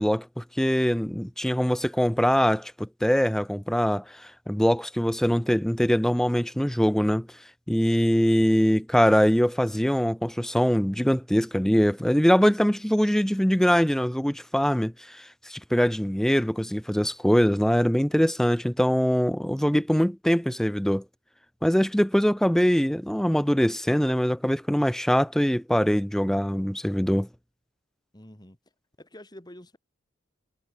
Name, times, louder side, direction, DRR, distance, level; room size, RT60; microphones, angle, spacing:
voice 1, 0.0-4.0 4.5-7.3 7.7-21.0 21.6-27.3, equal, ahead, 0.5 m, -23 dB
voice 2, 28.1-28.6 29.0-29.8, left 1 dB, 20° left, 2.8 m, -47 dB
head